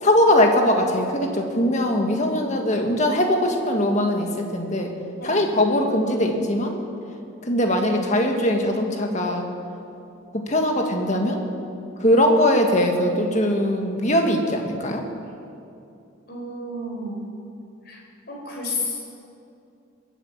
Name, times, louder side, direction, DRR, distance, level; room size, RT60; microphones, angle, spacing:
voice 1, 0.0-4.9 5.2-6.7 7.5-9.4 10.5-11.4 12.0-15.0, left 1 dB, 35° left, 3 dB, 1.7 m, -21 dB
voice 2, 13.0-13.4 16.3-17.2 17.8-18.0 18.3-19.0, left 1 dB, 50° left, -2 dB, 4.7 m, -32 dB
21.5 x 8.8 x 7.4 m, 2.6 s
head